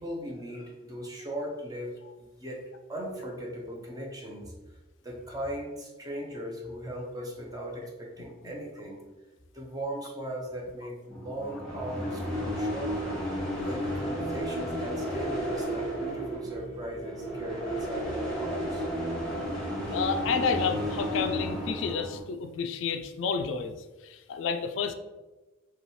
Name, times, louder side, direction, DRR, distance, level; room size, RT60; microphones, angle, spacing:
voice 1, 0.0-4.8 5.0-9.1 9.5-13.2 13.6-18.9, equal, 20° right, -1 dB, 0.7 m, -38 dB
sound 1, 11.1-22.2, equal, 5° left, 1.2 m, -33 dB
voice 2, 19.9-23.8 24.0-24.9, left 5 dB, 65° left, 7 dB, 0.3 m, -30 dB
5.4 x 2.3 x 3.0 m, 1.1 s
head